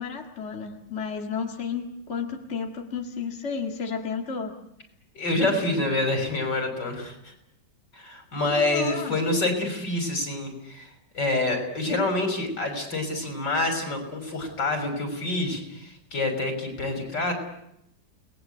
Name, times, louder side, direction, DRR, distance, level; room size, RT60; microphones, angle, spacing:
voice 1, 0.0-4.6 8.5-9.2, left 6 dB, 40° left, 2 dB, 2.2 m, -32 dB
voice 2, 5.1-7.3 7.9-10.9 11.1-17.3, left 2 dB, 75° left, 4 dB, 6.8 m, -27 dB
29.0 x 20.5 x 8.2 m, 0.78 s
omnidirectional pair, 1.9 m